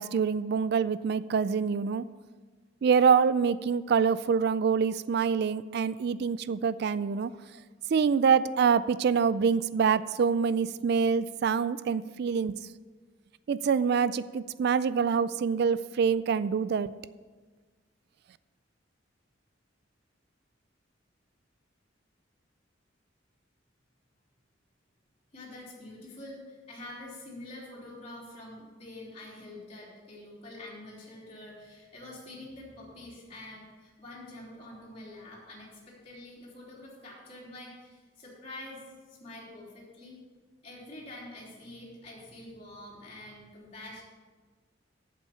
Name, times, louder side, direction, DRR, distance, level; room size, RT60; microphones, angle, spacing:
voice 1, 0.0-2.0 2.8-7.3 7.9-12.6 13.5-16.9, right 6 dB, 60° right, 17 dB, 0.3 m, -25 dB
voice 2, 25.3-38.8 39.1-40.2 40.6-44.0, left 1 dB, 30° left, -7 dB, 3.4 m, -46 dB
8.7 x 7.6 x 7.0 m, 1.4 s
head